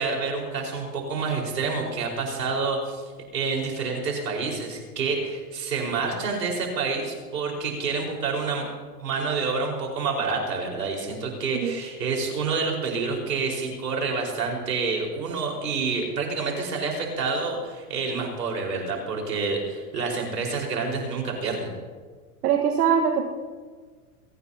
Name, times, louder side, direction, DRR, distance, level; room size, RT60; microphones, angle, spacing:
voice 1, 0.0-3.0 3.3-8.6 9.0-21.7, right 4 dB, 90° right, 0 dB, 5.2 m, -28 dB
voice 2, 22.4-23.3, right 7 dB, 70° right, 2 dB, 1.7 m, -22 dB
23.0 x 18.0 x 2.9 m, 1.5 s
hypercardioid pair, 115°, 47 cm